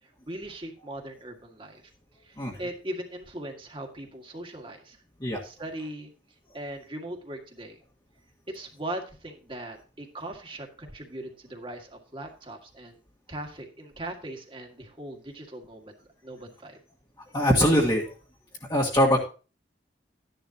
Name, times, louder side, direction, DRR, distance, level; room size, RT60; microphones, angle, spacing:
voice 1, 0.0-1.8 2.2-5.0 5.4-6.1 6.5-7.8 8.5-13.0 13.3-16.0 16.2-16.8, right 1 dB, 30° right, 3 dB, 1.9 m, -39 dB
voice 2, 17.3-18.1 18.7-19.3, equal, 25° left, -3 dB, 1.6 m, -22 dB
13.0 x 10.5 x 2.9 m, 0.34 s
head